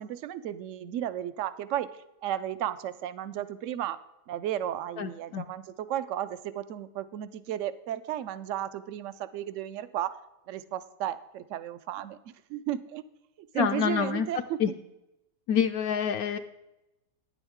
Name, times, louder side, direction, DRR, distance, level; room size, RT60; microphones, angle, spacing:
voice 1, 0.0-1.9 2.2-4.0 4.3-10.2 10.5-12.2 12.5-13.0 13.4-14.6, right 11 dB, 70° right, 13 dB, 0.7 m, -34 dB
voice 2, 5.0-5.4 13.5-14.3 14.6-14.7 15.5-16.4, left 8 dB, 70° left, 7 dB, 0.9 m, -27 dB
11.0 x 9.9 x 3.6 m, 0.93 s
omnidirectional pair, 1.8 m